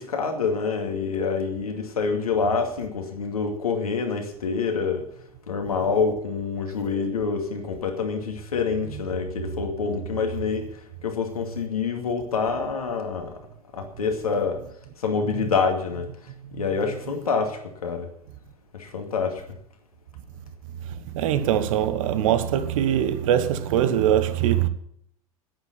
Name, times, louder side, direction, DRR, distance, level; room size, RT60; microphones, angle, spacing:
voice 1, 0.0-5.0 5.5-10.7 11.0-13.4 13.7-14.6 15.0-16.1 16.5-18.1 18.7-19.4, left 5 dB, 80° left, 2.4 m, -26 dB
voice 2, 20.8-24.7, right 10 dB, 65° right, 1.4 m, -23 dB
10.5 x 9.9 x 8.0 m
figure-of-eight pair, 75°, 19 cm